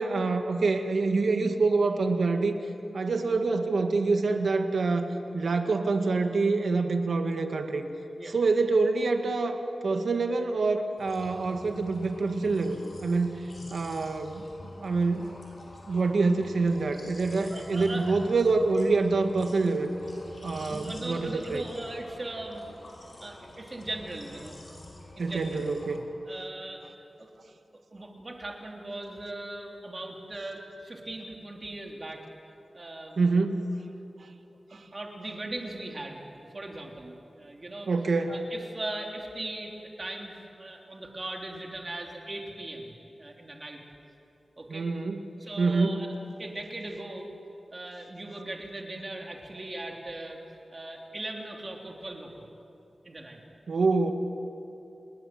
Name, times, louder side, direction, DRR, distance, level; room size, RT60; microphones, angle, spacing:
voice 1, 0.0-2.6 2.9-7.8 8.3-13.4 13.7-15.4 15.9-19.9 20.4-21.6 25.2-26.0 33.2-33.7 34.7-34.8 37.9-38.4 44.7-45.2 45.6-46.0 53.7-54.1, right 3 dB, 75° right, 5 dB, 2.0 m, -26 dB
sound 1, 11.0-26.0, left 1 dB, 50° left, 6.1 m, -46 dB
voice 2, 17.2-18.2 20.4-22.7 23.2-24.6 25.2-25.6 26.2-26.8 27.2-27.3 27.9-32.2 32.7-33.2 34.7-37.9 38.3-43.8 44.6-44.9 45.4-47.3 47.7-50.4 50.7-52.5 53.0-53.4, right 2 dB, 35° right, 1 dB, 3.5 m, -39 dB
29.0 x 20.5 x 7.9 m, 2.7 s
wide cardioid pair, 125°, 0 cm